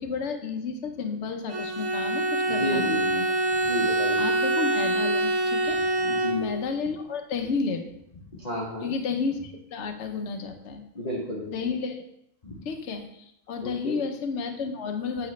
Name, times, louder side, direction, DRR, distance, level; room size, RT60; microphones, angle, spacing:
voice 1, 0.0-3.4 4.2-5.9 6.3-7.8 8.8-10.9 11.4-12.0 12.6-15.3, left 5 dB, 60° left, 6 dB, 1.0 m, -32 dB
Bowed string instrument, 1.5-6.8, right 1 dB, 65° right, 1.2 m, -25 dB
voice 2, 2.4-3.0 3.6-4.3 6.0-6.5 8.4-8.9 10.9-11.5 12.4-12.6 13.6-14.0, left 1 dB, 30° left, -5 dB, 1.0 m, -32 dB
8.7 x 4.9 x 3.2 m, 0.77 s
omnidirectional pair, 1.5 m